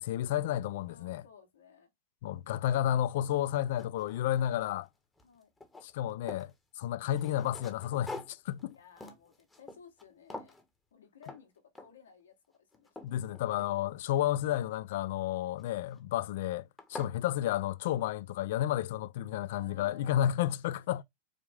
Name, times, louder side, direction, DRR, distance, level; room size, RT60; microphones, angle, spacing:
voice 1, 0.0-1.2 2.2-4.9 5.8-6.5 6.8-8.8 13.0-21.0, left 12 dB, 65° left, 0.3 m, -31 dB
voice 2, 0.9-1.9 5.2-5.5 8.7-10.5 10.9-13.2 19.5-20.2 20.7-20.8, left 6 dB, 85° left, 1.4 m, -57 dB
sound 1, 2.9-3.0 3.4-4.9 5.2-6.5 7.1-10.1 10.3-10.7 11.2-11.4 11.8-12.1 12.5-14.1 15.6-16.0 16.5-16.6 16.8-17.2, left 2 dB, 10° left, 0.9 m, -47 dB
4.9 x 2.0 x 3.5 m
hypercardioid pair, 115°, 0 cm